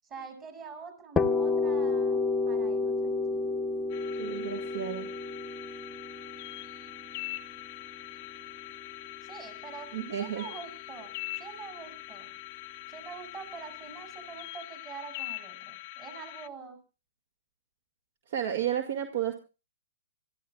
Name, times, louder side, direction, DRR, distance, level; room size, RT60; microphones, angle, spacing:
voice 1, 0.0-3.5 9.2-12.3 12.9-16.8, right 5 dB, 20° right, 7 dB, 7.1 m, -45 dB
sound 1, 1.2-8.9, left 3 dB, 10° left, 1.1 m, -30 dB
sound 2, 3.9-16.5, left 18 dB, 40° left, 0.7 m, -43 dB
voice 2, 4.2-5.1 9.9-10.5 18.3-19.3, right 10 dB, 55° right, 7 dB, 2.0 m, -32 dB
27.0 x 14.5 x 2.3 m, 0.33 s
hypercardioid pair, 125°, 0 cm